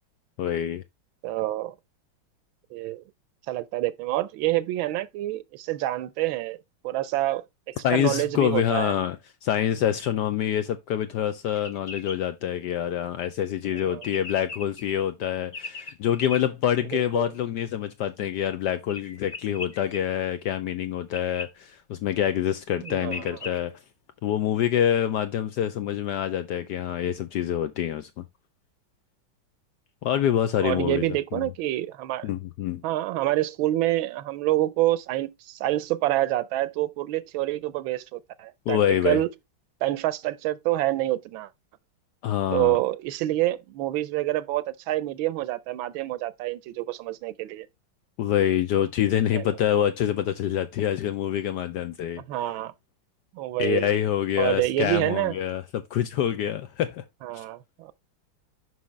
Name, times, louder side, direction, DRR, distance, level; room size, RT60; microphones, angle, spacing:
voice 1, 0.4-0.8 7.8-23.8 24.2-28.2 30.0-31.1 31.3-31.5 32.2-32.8 38.7-39.2 42.2-42.8 48.2-52.2 53.6-57.0 57.3-57.4, left 10 dB, 75° left, 1.0 m, -26 dB
voice 2, 1.2-1.7 2.7-3.0 3.5-6.6 6.8-8.9 13.9-14.0 16.9-17.3 22.8-23.3 30.6-32.3 32.8-38.8 39.0-39.3 39.8-41.5 42.5-47.7 49.3-49.5 52.3-52.7 53.3-53.9 54.4-55.4 57.2-57.9, right 15 dB, 80° right, 1.3 m, -27 dB
sound 1, 11.5-12.2 13.8-14.9 15.5-16.4 18.9-20.0 21.1-21.5 22.5-22.6 22.8-23.6, left 3 dB, 40° left, 0.7 m, -38 dB
6.3 x 5.6 x 3.1 m
omnidirectional pair, 2.2 m